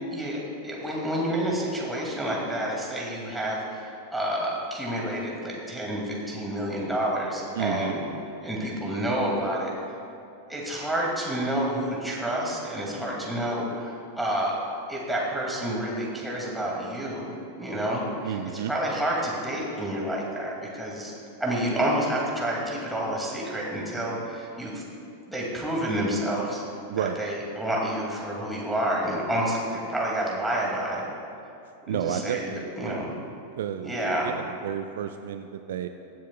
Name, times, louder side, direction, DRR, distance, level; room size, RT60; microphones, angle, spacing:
voice 1, 0.1-8.0 8.4-9.7 10.5-14.6 14.9-18.4 18.7-21.1 21.4-24.8 25.3-26.6 27.0-31.0 31.9-33.1 33.8-34.3, right 1 dB, 5° right, -4 dB, 2.4 m, -29 dB
voice 2, 7.5-7.9 18.2-18.7 26.9-27.2 31.9-33.0 33.6-34.0 34.2-35.9, right 9 dB, 60° right, 8 dB, 0.4 m, -31 dB
21.5 x 7.4 x 2.4 m, 2.7 s
figure-of-eight pair, 90°, 0 cm